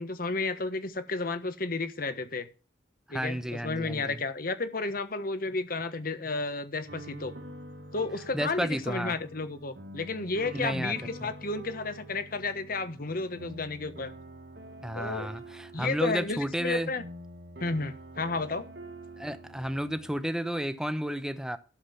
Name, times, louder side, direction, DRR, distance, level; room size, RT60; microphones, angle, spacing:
voice 1, 0.0-2.5 3.1-7.3 7.9-14.1 14.9-15.3 15.7-17.0 17.6-18.6, left 3 dB, 55° left, 1.3 m, -32 dB
voice 2, 3.1-4.2 8.3-9.2 10.5-11.3 14.8-16.9 19.2-21.6, equal, 5° right, 0.9 m, -32 dB
sound 1, 6.9-20.2, right 2 dB, 65° right, 2.0 m, -46 dB
11.5 x 7.4 x 5.8 m
head